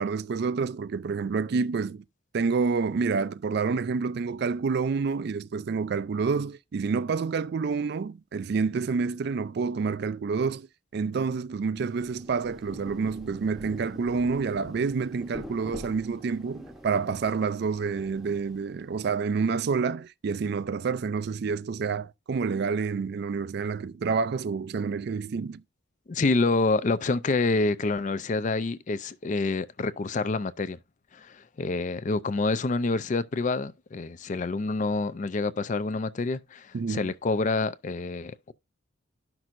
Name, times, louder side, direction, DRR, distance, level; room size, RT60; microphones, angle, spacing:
voice 1, 0.0-2.0 2.3-10.7 10.9-25.6 36.7-37.1, right 5 dB, 55° right, 0.3 m, -28 dB
Rain, 11.8-19.0, equal, ahead, 0.8 m, -45 dB
voice 2, 26.1-30.8 31.1-38.5, left 3 dB, 35° left, 0.4 m, -27 dB
11.0 x 6.0 x 2.5 m
head